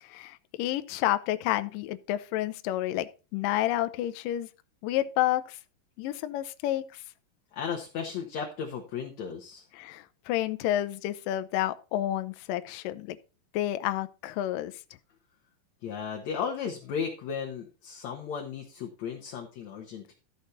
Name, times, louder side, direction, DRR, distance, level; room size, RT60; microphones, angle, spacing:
voice 1, 0.0-4.5 4.8-5.6 6.0-7.0 9.7-13.2 13.5-14.7, left 13 dB, 75° left, 10 dB, 2.2 m, -30 dB
voice 2, 7.5-9.6 15.8-20.1, left 6 dB, 60° left, 1 dB, 2.3 m, -35 dB
13.5 x 6.4 x 4.1 m, 0.32 s
omnidirectional pair, 4.2 m